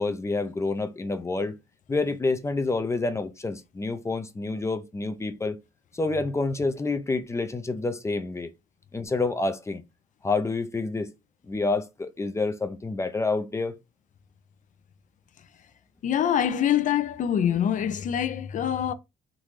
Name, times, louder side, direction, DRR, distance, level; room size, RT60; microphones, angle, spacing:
voice 1, 0.0-1.6 1.9-5.6 5.9-8.5 8.9-9.8 10.2-11.1 11.5-13.7, left 3 dB, 15° left, 0.6 m, -28 dB
voice 2, 16.0-18.9, left 9 dB, 50° left, 0.7 m, -25 dB
3.8 x 2.6 x 4.6 m
cardioid pair, 110°, 17 cm